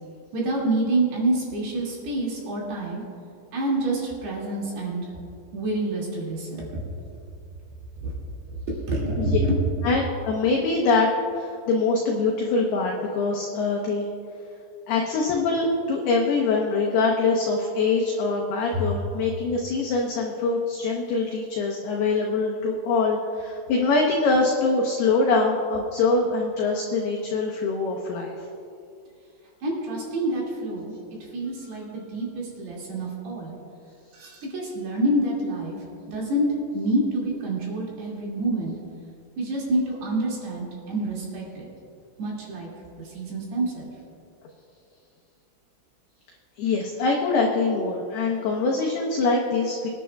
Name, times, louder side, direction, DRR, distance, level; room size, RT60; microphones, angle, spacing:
voice 1, 0.3-3.0 3.5-5.1 5.5-6.8 8.0-8.1 8.9-9.6 18.7-18.9 29.6-30.9 31.3-33.6 34.1-35.8 36.1-36.5 36.7-38.7 39.4-41.7 42.2-42.7 43.0-43.9, right 1 dB, 60° right, -4 dB, 3.9 m, -27 dB
voice 2, 9.8-14.1 14.9-28.4 46.6-49.9, left 3 dB, 85° left, -1 dB, 2.2 m, -24 dB
24.0 x 10.5 x 2.3 m, 2.5 s
omnidirectional pair, 6.0 m